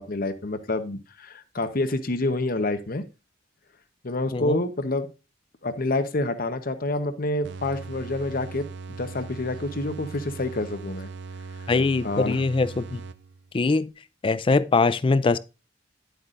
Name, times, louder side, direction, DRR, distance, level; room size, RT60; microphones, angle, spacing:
voice 1, 0.0-3.0 4.0-5.1 5.6-11.1 11.6-11.7 12.0-12.4, left 2 dB, 50° left, 0.9 m, -28 dB
sound 1, 7.4-13.5, right 4 dB, 60° right, 0.4 m, -39 dB
voice 2, 11.7-13.0 13.5-13.9 14.2-15.4, left 3 dB, 25° left, 0.4 m, -22 dB
10.5 x 8.0 x 2.5 m
head